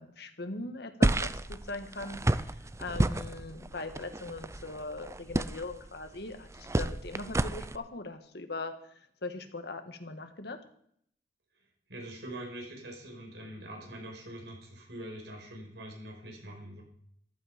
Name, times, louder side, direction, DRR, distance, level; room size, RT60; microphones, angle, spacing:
voice 1, 0.0-8.9 9.2-10.6, left 2 dB, 65° left, 7 dB, 1.6 m, -40 dB
sound 1, 1.0-7.8, right 1 dB, 15° right, 0.5 m, -31 dB
voice 2, 11.9-16.8, right 1 dB, 75° right, 1 dB, 5.2 m, -44 dB
14.5 x 12.0 x 5.1 m, 0.66 s
head